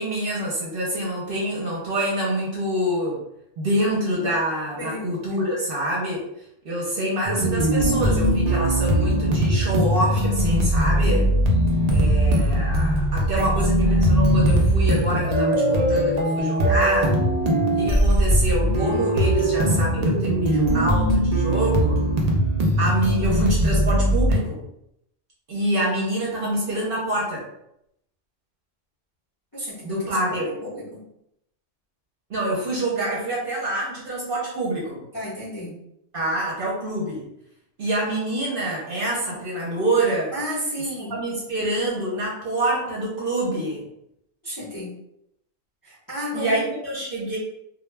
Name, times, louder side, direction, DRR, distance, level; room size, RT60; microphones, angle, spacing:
voice 1, 0.0-3.2 3.6-6.3 6.6-11.3 11.9-17.1 17.8-22.0 22.8-24.6 25.5-27.4 29.8-30.5 32.3-35.0 36.1-37.3 37.8-40.4 41.1-43.9 46.3-47.4, right 1 dB, 55° right, -4 dB, 0.7 m, -26 dB
sound 1, 7.2-24.4, right 1 dB, 75° right, 0.3 m, -20 dB
voice 2, 13.4-14.2 29.5-31.0 35.1-35.8 40.3-41.2 44.4-44.9 45.8-46.7, equal, 25° left, -8 dB, 0.5 m, -33 dB
2.2 x 2.0 x 3.1 m, 0.77 s
omnidirectional pair, 1.3 m